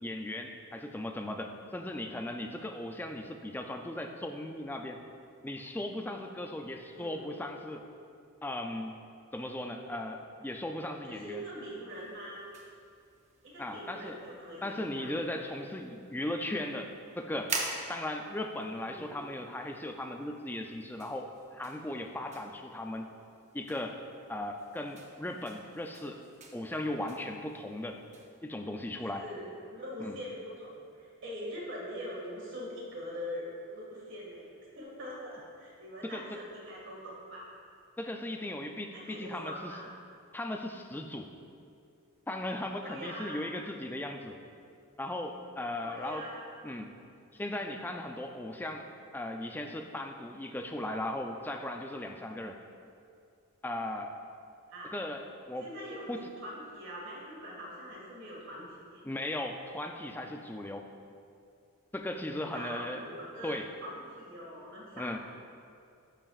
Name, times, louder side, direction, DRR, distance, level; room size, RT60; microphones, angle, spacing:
voice 1, 0.0-5.0 5.4-7.8 8.4-9.0 9.3-11.4 13.6-14.2 14.6-17.6 17.9-23.1 23.5-24.0 24.3-26.2 26.5-28.0 28.4-29.2 30.0-30.2 36.0-36.4 38.0-39.7 40.3-41.3 42.3-44.3 45.0-46.3 46.6-46.9 47.3-48.9 49.1-52.6 53.6-54.2 54.8-55.7 56.1-56.2 59.0-60.9 61.9-63.1 63.4-63.7 64.9-65.2, left 1 dB, 10° left, 4 dB, 0.3 m, -37 dB
voice 2, 6.9-7.3 11.1-12.5 13.4-15.1 18.9-19.3 29.2-37.5 38.9-39.8 42.8-43.5 45.8-46.5 54.7-54.9 55.6-56.1 56.4-59.0 62.5-65.2, equal, 55° right, -4 dB, 1.8 m, -43 dB
sound 1, 11.9-28.4, right 3 dB, 30° right, 0.7 m, -46 dB
12.0 x 5.7 x 2.4 m, 2.4 s
head